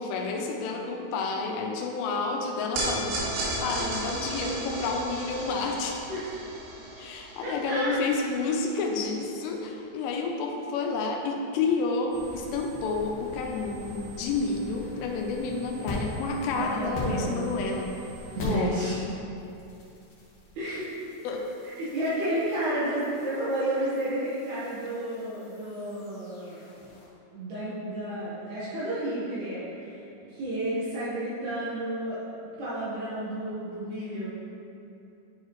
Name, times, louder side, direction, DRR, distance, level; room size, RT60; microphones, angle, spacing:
voice 1, 0.0-3.2 3.6-6.0 7.0-18.0 18.4-18.8 21.2-21.5, left 4 dB, 85° left, 1 dB, 3.2 m, -30 dB
sound 1, 2.8-9.2, right 1 dB, 90° right, 4.3 m, -34 dB
voice 2, 7.4-8.0 16.6-17.3 18.3-19.0 20.6-20.9 21.6-26.7 27.3-32.2 32.6-34.3, right 1 dB, 65° right, -10 dB, 2.9 m, -31 dB
sound 2, 12.1-18.7 19.0-27.1, left 1 dB, 70° left, 1.9 m, -41 dB
11.0 x 4.6 x 3.1 m, 2.8 s
omnidirectional pair, 5.7 m